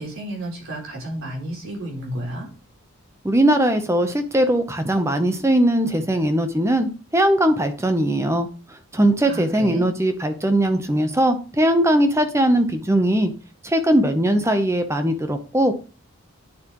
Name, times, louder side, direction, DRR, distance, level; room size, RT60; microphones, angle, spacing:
voice 1, 0.0-2.5 9.3-9.9, right 1 dB, 70° right, -1 dB, 3.8 m, -32 dB
voice 2, 3.2-8.5 8.9-13.3 13.6-15.7, right 1 dB, 15° right, 8 dB, 0.8 m, -20 dB
8.9 x 7.5 x 3.0 m, 0.35 s
head